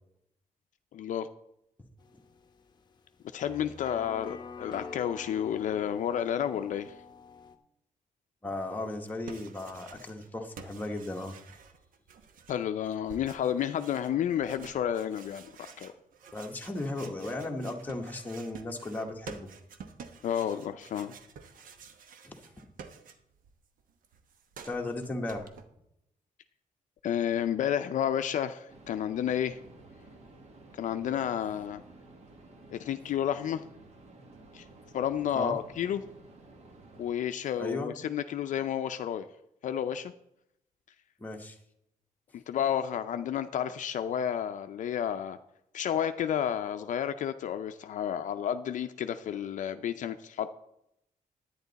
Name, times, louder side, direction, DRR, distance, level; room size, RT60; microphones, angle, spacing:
voice 1, 0.9-1.3 3.3-6.9 12.5-15.9 20.2-21.1 27.0-29.6 30.7-31.8 32.7-33.6 34.5-34.6 34.9-36.0 37.0-39.3 39.6-40.1 42.3-45.4 45.7-50.5, left 9 dB, 65° left, 9 dB, 0.5 m, -31 dB
sound 1, 2.0-7.6, left 5 dB, 30° left, 0.8 m, -47 dB
voice 2, 8.4-11.3 16.3-19.5 22.2-22.4 24.6-25.5 35.3-35.6 37.6-38.0 41.2-41.6, left 2 dB, 10° left, 2 dB, 1.1 m, -36 dB
sound 2, 8.9-10.3 10.6-23.5 23.8-25.6, right 6 dB, 85° right, 1.0 m, -50 dB
sound 3, 28.7-37.1, right 2 dB, 50° right, 1.6 m, -53 dB
10.5 x 9.4 x 4.0 m, 0.80 s
wide cardioid pair, 175°, 14 cm